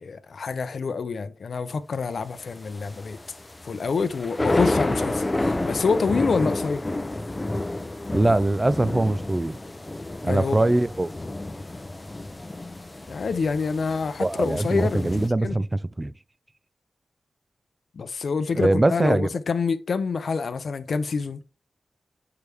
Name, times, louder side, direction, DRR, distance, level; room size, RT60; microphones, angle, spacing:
voice 1, 0.0-3.2 3.6-6.8 10.3-10.8 13.1-15.2 15.4-15.6 17.9-21.4, left 5 dB, 65° left, 0.6 m, -27 dB
sound 1, 2.2-15.3, left 2 dB, 20° left, 0.7 m, -30 dB
voice 2, 8.1-9.6 10.2-11.1 14.2-16.1 18.6-19.3, right 2 dB, 20° right, 0.3 m, -22 dB
6.8 x 4.8 x 3.4 m
wide cardioid pair, 115°, 0 cm